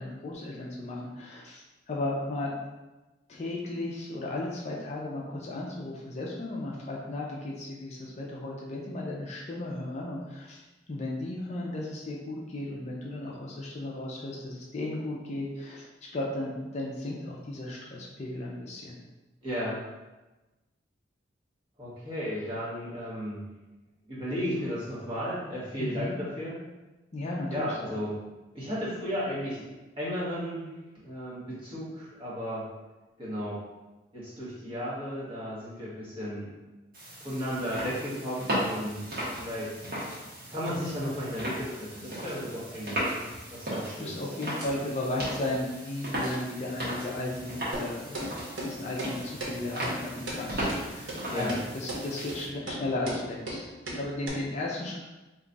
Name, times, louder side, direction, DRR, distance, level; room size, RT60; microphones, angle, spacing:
voice 1, 0.0-2.5 3.3-10.6 10.9-19.0 22.4-22.5 25.8-26.2 27.1-27.9 43.9-48.2 48.6-55.0, left 2 dB, 35° left, -3 dB, 0.4 m, -35 dB
voice 2, 19.4-19.8 21.8-23.4 24.1-26.5 27.5-28.2 28.5-29.7 30.0-30.7 30.9-32.7 33.2-33.6 34.1-36.5 37.2-39.0 39.4-39.7 40.5-43.0 43.5-44.2 51.3-51.5, equal, 30° right, -9 dB, 1.2 m, -34 dB
sound 1, 36.9-52.5, equal, 50° right, 1.2 m, -36 dB
sound 2, 47.7-47.9 48.1-48.3 48.6-48.7 49.0-49.1 49.4-49.5 49.8-49.9 50.3-50.4 50.7-50.8 51.1-51.2 51.5-51.6 51.9-52.0 52.3-52.4 52.7-52.8 53.0-53.2 53.5-53.6 53.9-54.0 54.3-54.4, right 1 dB, 85° right, 0.9 m, -35 dB
3.0 x 2.3 x 3.8 m, 1.1 s
head